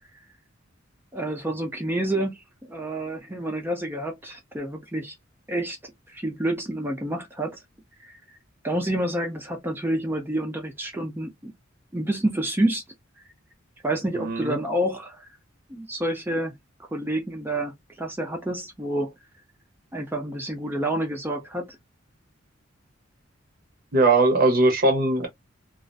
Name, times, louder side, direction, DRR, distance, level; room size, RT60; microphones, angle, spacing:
voice 1, 1.1-5.2 5.5-7.6 8.0-8.2 8.6-11.5 11.9-12.8 13.8-15.3 15.7-19.1 19.9-21.8, right 1 dB, 10° right, 0.5 m, -29 dB
voice 2, 14.2-14.5 23.9-25.3, right 2 dB, 50° right, 0.7 m, -20 dB
2.4 x 2.1 x 2.4 m
head